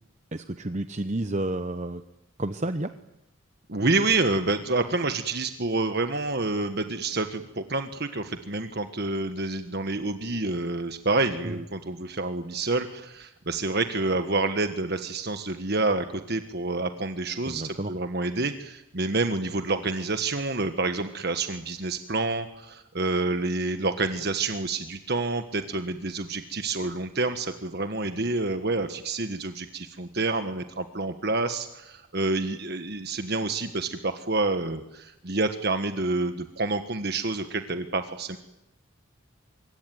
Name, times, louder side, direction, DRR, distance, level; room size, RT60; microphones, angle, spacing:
voice 1, 0.3-2.0 2.4-2.9 11.4-11.6 17.5-18.0, right 1 dB, 35° right, 10 dB, 0.9 m, -30 dB
voice 2, 3.7-38.4, right 3 dB, 50° right, 8 dB, 1.5 m, -28 dB
25.5 x 23.0 x 9.4 m, 0.91 s
head